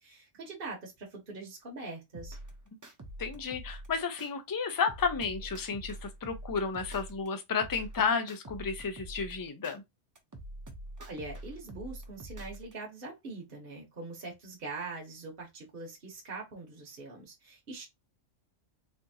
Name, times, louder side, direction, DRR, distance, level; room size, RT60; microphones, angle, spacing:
voice 1, 0.0-2.4 11.0-17.9, right 3 dB, 50° right, 1.2 m, -43 dB
sound 1, 2.1-4.3 4.7-7.3 7.6-9.8 10.2-12.7, right 1 dB, 20° right, 0.5 m, -45 dB
voice 2, 3.2-9.8, left 5 dB, 35° left, 0.3 m, -32 dB
4.2 x 2.7 x 2.7 m
omnidirectional pair, 1.2 m